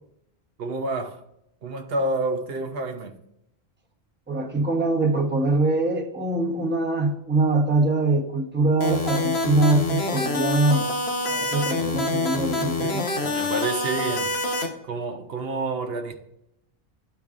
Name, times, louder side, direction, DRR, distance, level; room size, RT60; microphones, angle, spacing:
voice 1, 0.6-1.2 1.6-3.2 12.6-13.0 13.2-14.4 14.8-16.1, right 2 dB, 70° right, 0.9 m, -29 dB
voice 2, 4.3-10.9 11.3-13.0, right 2 dB, 10° right, 0.9 m, -23 dB
sound 1, 8.8-14.7, left 3 dB, 85° left, 1.2 m, -26 dB
12.0 x 4.6 x 2.4 m
omnidirectional pair, 1.0 m